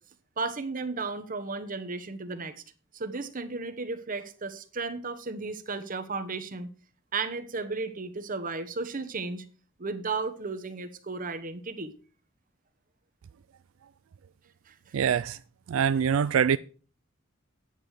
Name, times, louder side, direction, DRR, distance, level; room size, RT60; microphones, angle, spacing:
voice 1, 0.4-2.5 2.9-6.7 7.1-9.4 9.8-11.9 14.7-14.8, right 3 dB, 45° right, 1.1 m, -34 dB
voice 2, 14.9-15.4 15.7-16.6, right 7 dB, 85° right, 0.4 m, -24 dB
9.5 x 8.5 x 4.8 m
head